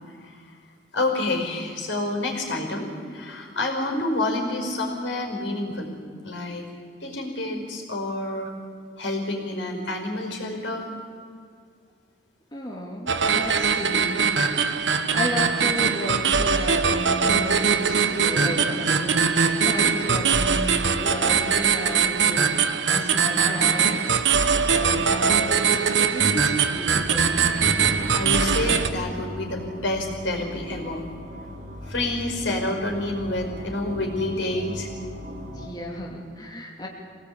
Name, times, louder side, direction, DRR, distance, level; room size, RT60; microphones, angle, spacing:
voice 1, 0.9-5.9 6.2-6.7 7.0-8.5 9.0-10.9 23.4-23.5 25.0-25.4 28.1-31.0 31.8-34.9, left 2 dB, 80° left, 2 dB, 5.2 m, -28 dB
voice 2, 12.5-14.8 15.1-19.3 19.6-22.6 22.8-24.2 24.7-27.3 35.5-36.9, left 1 dB, 20° left, -1 dB, 2.7 m, -33 dB
sound 1, 13.1-28.9, right 6 dB, 75° right, 1.2 m, -22 dB
sound 2, 26.8-35.7, equal, 45° right, 3.9 m, -38 dB
25.5 x 18.0 x 8.8 m, 2.2 s
head